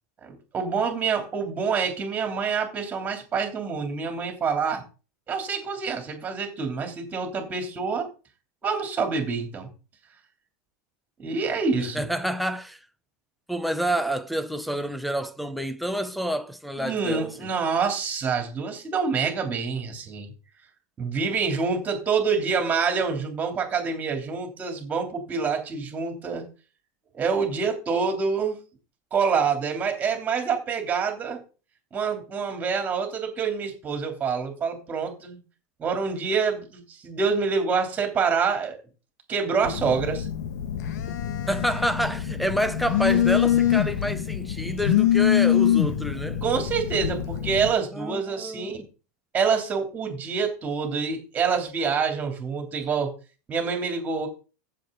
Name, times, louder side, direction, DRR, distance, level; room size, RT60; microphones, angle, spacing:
voice 1, 0.2-4.8 5.3-8.1 8.6-9.7 11.2-12.1 16.8-20.3 21.0-26.4 27.1-28.6 29.1-31.4 31.9-35.4 35.8-38.8 39.3-40.3 46.4-48.8 49.3-53.1 53.5-54.3, right 5 dB, 15° right, 3.3 m, -26 dB
voice 2, 11.8-12.8 13.5-17.5 41.5-46.4 47.9-48.8, equal, ahead, 0.8 m, -28 dB
Telephone, 39.6-47.7, left 10 dB, 70° left, 1.4 m, -24 dB
15.0 x 7.4 x 3.9 m
supercardioid pair, 170°, 9 cm